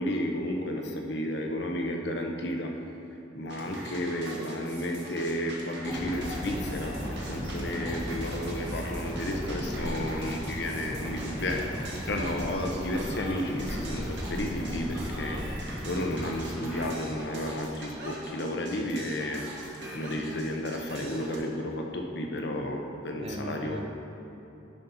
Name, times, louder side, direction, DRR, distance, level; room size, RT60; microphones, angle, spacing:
voice 1, 0.0-2.7 3.3-19.4 19.9-23.9, left 1 dB, 60° left, 2 dB, 0.8 m, -32 dB
sound 1, 3.5-21.4, right 1 dB, 65° right, 1.5 m, -43 dB
sound 2, 5.8-15.6, equal, 30° left, 1.4 m, -37 dB
sound 3, 5.9-17.0, equal, 10° right, 1.7 m, -41 dB
voice 2, 9.8-10.2 23.2-23.9, right 1 dB, 30° right, 3 dB, 0.5 m, -39 dB
9.5 x 4.0 x 5.7 m, 2.8 s
head